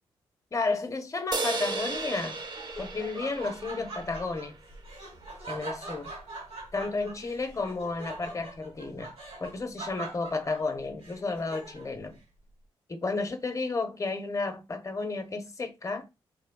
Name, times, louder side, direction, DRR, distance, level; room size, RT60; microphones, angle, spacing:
voice 1, 0.5-2.4 2.8-4.6 5.5-6.1 6.7-9.1 9.4-12.2 12.9-16.0, left 3 dB, 30° left, 0.7 m, -32 dB
sound 1, 1.3-4.8, right 3 dB, 40° right, 0.6 m, -35 dB
Laughter, 2.0-12.0, right 2 dB, 80° right, 1.3 m, -43 dB
3.0 x 2.2 x 2.2 m
hypercardioid pair, 40°, 11 cm